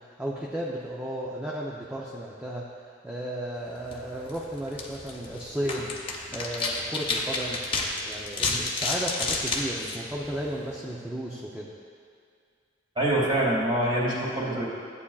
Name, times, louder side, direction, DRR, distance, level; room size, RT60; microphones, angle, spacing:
voice 1, 0.2-2.7 3.0-5.9 6.3-7.6 8.0-11.7, right 1 dB, 5° right, -5 dB, 0.6 m, -34 dB
sound 1, 3.8-10.7, left 3 dB, 30° left, 0.9 m, -32 dB
voice 2, 13.0-14.6, right 1 dB, 25° right, -6 dB, 2.3 m, -25 dB
14.0 x 8.5 x 2.3 m, 2.2 s
head